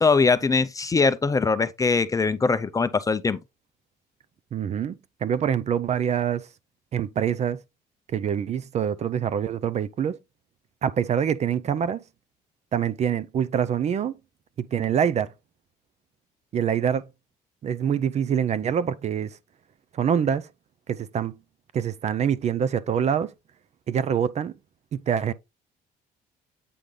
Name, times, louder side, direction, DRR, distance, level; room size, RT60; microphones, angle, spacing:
voice 1, 0.0-3.4, left 4 dB, 20° left, 0.5 m, -22 dB
voice 2, 4.5-4.9 5.2-6.5 6.9-7.6 8.1-10.2 10.8-12.0 12.7-14.1 14.6-15.3 16.5-17.1 17.6-19.4 19.9-20.5 20.9-21.4 21.7-23.3 23.9-24.5 24.9-25.3, right 8 dB, 40° right, 0.5 m, -25 dB
8.5 x 3.8 x 3.2 m
cardioid pair, 110°, 17 cm